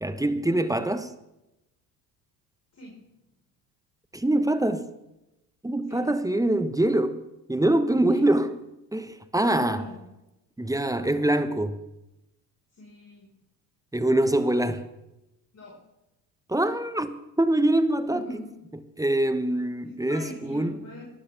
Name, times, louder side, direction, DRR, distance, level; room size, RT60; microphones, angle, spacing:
voice 1, 0.0-1.1 4.1-4.9 5.6-7.2 7.5-8.6 8.9-9.8 10.6-11.8 13.9-14.9 16.5-18.2 19.0-20.8, right 1 dB, 5° right, 1.2 m, -24 dB
voice 2, 9.3-10.0 12.7-13.3 15.5-15.8 18.1-18.6 19.8-21.0, left 2 dB, 35° left, 4.8 m, -41 dB
23.5 x 12.5 x 3.5 m
hypercardioid pair, 65°, 47 cm